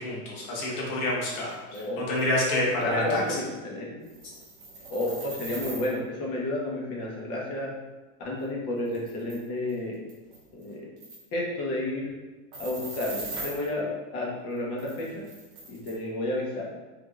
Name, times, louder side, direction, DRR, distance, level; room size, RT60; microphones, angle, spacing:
voice 1, 0.0-3.2, left 1 dB, 75° left, -4 dB, 1.4 m, -28 dB
voice 2, 1.7-2.1 2.8-3.9 4.9-7.7 8.2-10.0 10.5-10.9 11.3-12.1 12.6-15.2 15.7-16.7, left 1 dB, 35° left, -3 dB, 0.9 m, -31 dB
sound 1, 1.7-1.8 2.2-2.3 2.8-2.9 3.1-3.3 4.0-5.9 8.4-8.5 8.9-9.4 9.7-9.8 10.1-10.7 11.0-11.2 12.5-13.7 14.8-15.9, right 3 dB, 30° right, 0.8 m, -40 dB
3.3 x 3.2 x 2.4 m, 1.2 s
supercardioid pair, 145°, 43 cm